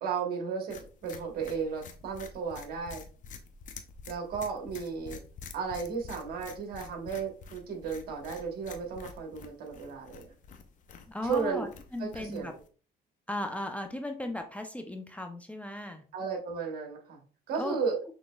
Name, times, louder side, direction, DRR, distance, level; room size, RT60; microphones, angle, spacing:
voice 1, 0.0-3.0 4.1-5.2 5.5-10.3 11.2-11.7 12.0-12.6 16.1-17.2 17.5-18.0, right 5 dB, 65° right, 3 dB, 1.3 m, -34 dB
sound 1, 0.7-12.7, left 5 dB, 50° left, 0.6 m, -48 dB
voice 2, 11.1-12.5 13.3-16.0 17.6-17.8, left 1 dB, 10° left, 5 dB, 0.5 m, -36 dB
6.1 x 3.0 x 2.3 m, 0.39 s
cardioid pair, 110°, 17 cm